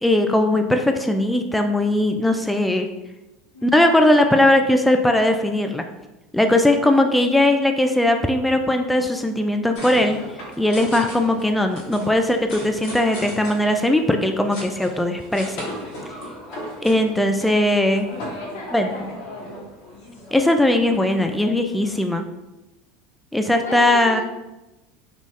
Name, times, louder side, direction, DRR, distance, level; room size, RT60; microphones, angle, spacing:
voice 1, 0.0-2.9 3.6-5.8 6.3-10.2 10.6-15.7 16.8-18.1 18.7-18.9 20.3-22.3 23.3-24.2, left 1 dB, 5° left, 5 dB, 0.3 m, -19 dB
voice 2, 3.5-3.9 18.4-19.7 23.6-24.2, left 3 dB, 80° left, -3 dB, 1.0 m, -35 dB
sound 1, 9.7-22.0, equal, 65° left, 1.2 m, -37 dB
3.8 x 2.4 x 3.2 m, 1.0 s
hypercardioid pair, 75°, 0 cm